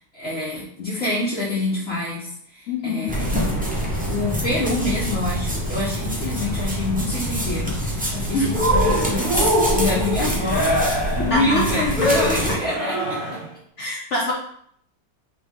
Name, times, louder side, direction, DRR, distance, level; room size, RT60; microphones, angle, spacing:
voice 1, 0.1-3.4 4.1-10.7 11.2-13.0, left 2 dB, 45° left, -7 dB, 1.3 m, -26 dB
voice 2, 2.7-3.1 8.3-8.5 11.3-12.1 13.8-14.3, left 1 dB, 65° left, -2 dB, 0.7 m, -25 dB
sound 1, 3.1-12.6, equal, 15° right, 0.3 m, -25 dB
Cheering, 8.5-13.5, equal, 35° right, 1.3 m, -23 dB
4.3 x 3.1 x 3.6 m, 0.66 s
omnidirectional pair, 1.8 m